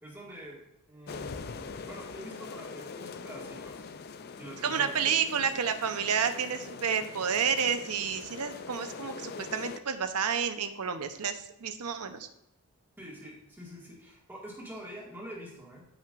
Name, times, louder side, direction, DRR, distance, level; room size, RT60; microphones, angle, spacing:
voice 1, 0.0-0.6 0.9-3.8 4.4-5.5 13.0-15.8, right 1 dB, 10° right, -5 dB, 2.0 m, -46 dB
sound 1, 1.1-9.8, left 5 dB, 45° left, 0.4 m, -43 dB
voice 2, 4.6-12.3, right 7 dB, 90° right, 8 dB, 0.9 m, -30 dB
14.0 x 5.8 x 2.6 m, 0.87 s
head